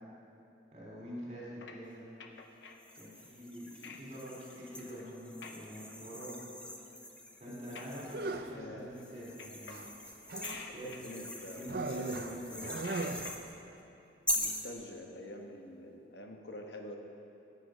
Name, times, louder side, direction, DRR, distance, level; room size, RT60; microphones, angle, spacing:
voice 1, 0.7-2.0 2.9-6.3 6.7-6.8 7.4-9.8 10.7-11.2 11.5-12.9, equal, 40° right, -6 dB, 3.3 m, -45 dB
sound 1, 1.6-2.8 3.4-3.6 3.8-4.0 4.4-4.6 5.0-5.1 5.4-5.6 6.1-6.2 6.8-6.9 7.3-8.4 8.7-9.1 9.4-10.0 10.2-11.9 12.4-13.5, left 4 dB, 90° left, 0.8 m, -50 dB
sound 2, 2.8-8.3 8.9-13.4 14.3-14.7, left 1 dB, 5° left, 0.6 m, -42 dB
sound 3, 8.1-8.7 9.7-10.7 11.7-13.5, right 3 dB, 60° right, 0.6 m, -38 dB
voice 2, 8.5-8.9 10.7-11.8 14.3-17.0, left 1 dB, 75° left, 2 dB, 1.2 m, -46 dB
13.5 x 9.0 x 5.0 m, 2.8 s
head